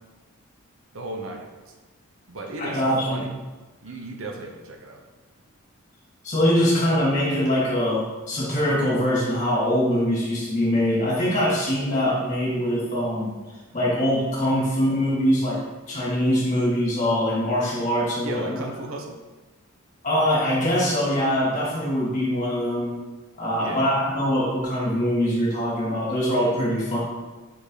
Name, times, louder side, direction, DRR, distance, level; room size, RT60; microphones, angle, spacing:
voice 1, 0.9-1.7 2.3-3.3 3.8-5.0 18.2-19.2 23.6-23.8, right 2 dB, 65° right, 2 dB, 1.0 m, -35 dB
voice 2, 2.6-3.2 6.2-13.3 13.7-15.6 15.9-18.6 20.0-22.9 23.4-27.0, equal, 30° left, -6 dB, 2.6 m, -23 dB
6.5 x 5.3 x 5.0 m, 1.2 s
head